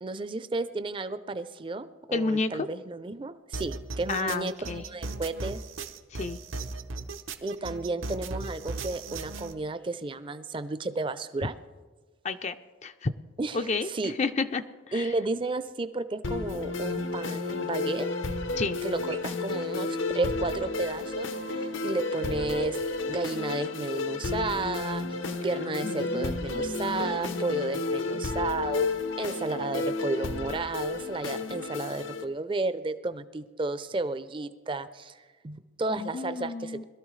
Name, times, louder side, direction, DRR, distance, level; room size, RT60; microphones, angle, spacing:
voice 1, 0.0-5.6 7.4-11.6 13.4-14.1 14.9-18.1 18.8-22.8 23.1-25.0 25.4-28.9 29.2-36.8, right 3 dB, 25° right, 12 dB, 0.4 m, -33 dB
voice 2, 2.1-2.7 4.1-4.8 6.1-6.4 12.2-12.6 12.8-13.1 13.5-15.1 18.6-18.8 25.8-27.5 35.9-36.8, left 4 dB, 35° left, 9 dB, 0.4 m, -31 dB
sound 1, 3.5-9.5, right 3 dB, 90° right, 0.9 m, -37 dB
sound 2, 16.2-32.2, left 3 dB, 80° left, 0.9 m, -32 dB
21.5 x 13.0 x 3.2 m, 1.4 s
head